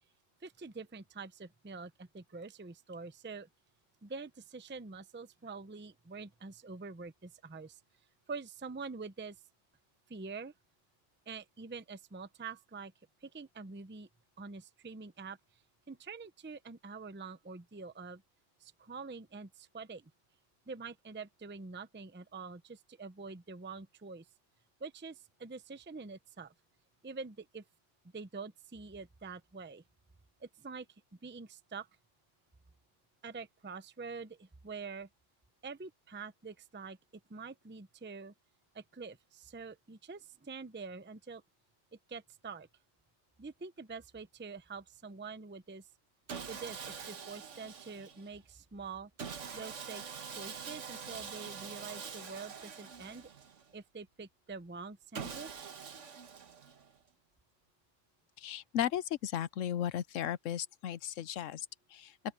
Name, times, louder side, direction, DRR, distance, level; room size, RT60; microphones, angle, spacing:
voice 1, 0.4-3.5 4.0-7.8 8.3-9.4 10.1-10.5 11.3-12.9 13.2-14.1 14.4-15.4 15.9-18.2 18.6-20.1 20.7-24.3 24.8-26.5 27.0-27.6 28.1-29.8 30.4-30.9 31.2-31.9 33.2-35.1 35.6-37.0 37.3-38.3 38.7-41.4 42.1-42.7 43.4-45.9 46.5-49.1 49.5-53.3 53.7-55.7, right 4 dB, 10° right, 0.6 m, -46 dB
Sawing, 46.3-48.3 49.2-53.7 55.1-57.0, right 6 dB, 75° right, 1.6 m, -45 dB
voice 2, 58.4-61.7 61.9-62.1, left 10 dB, 80° left, 1.1 m, -35 dB
open air
omnidirectional pair, 1.3 m